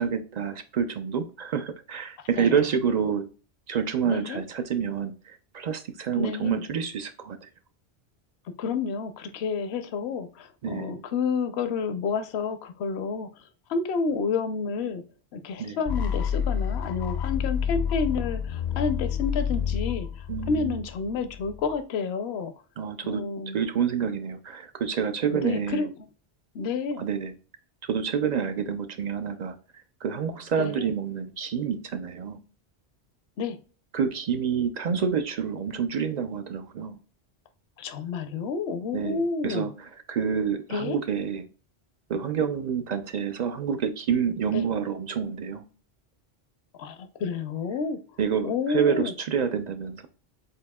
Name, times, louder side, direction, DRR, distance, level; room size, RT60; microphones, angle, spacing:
voice 1, 0.0-3.3 3.7-7.5 10.6-11.0 15.6-15.8 20.3-20.8 22.8-23.3 23.5-25.8 27.0-27.3 27.8-32.4 33.9-37.0 38.9-41.5 42.1-45.6 48.2-50.1, right 7 dB, 55° right, 0.5 m, -28 dB
voice 2, 4.0-4.4 6.1-6.6 8.6-13.3 13.7-15.0 15.3-22.5 23.0-23.6 25.3-25.9 26.5-27.0 30.6-30.9 33.4-33.6 37.8-39.7 40.7-41.0 44.5-44.6 46.8-48.0 48.4-49.1, left 5 dB, 75° left, 0.9 m, -30 dB
sound 1, 15.9-21.8, left 8 dB, 55° left, 0.6 m, -29 dB
7.6 x 2.7 x 2.2 m
omnidirectional pair, 1.1 m